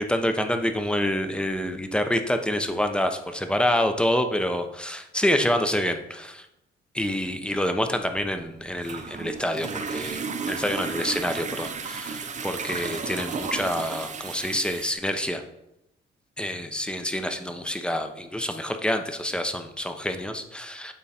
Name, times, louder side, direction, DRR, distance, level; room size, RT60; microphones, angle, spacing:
voice 1, 0.0-6.5 6.9-15.4 16.4-20.9, left 1 dB, 5° left, 7 dB, 0.7 m, -27 dB
sound 1, 7.9-14.9, right 5 dB, 35° right, 0.7 m, -34 dB
8.9 x 3.7 x 4.3 m, 0.87 s
cardioid pair, 90°, 20 cm